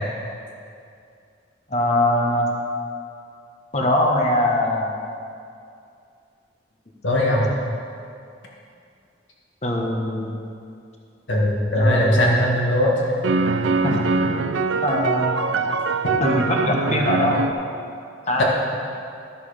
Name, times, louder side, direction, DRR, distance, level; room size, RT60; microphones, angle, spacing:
voice 1, 1.7-2.5 3.7-4.9 9.6-10.3 11.8-12.3 13.8-14.3 14.8-15.4 16.2-17.5 18.3-18.4, left 1 dB, 35° left, 1 dB, 1.1 m, -22 dB
voice 2, 7.0-7.5 11.3-12.9 13.9-14.0 18.4-18.5, left 1 dB, 80° left, -3 dB, 1.8 m, -19 dB
sound 1, 12.5-12.6 13.2-17.5, right 4 dB, 90° right, 0.5 m, -23 dB
12.5 x 6.9 x 5.0 m, 2.5 s
head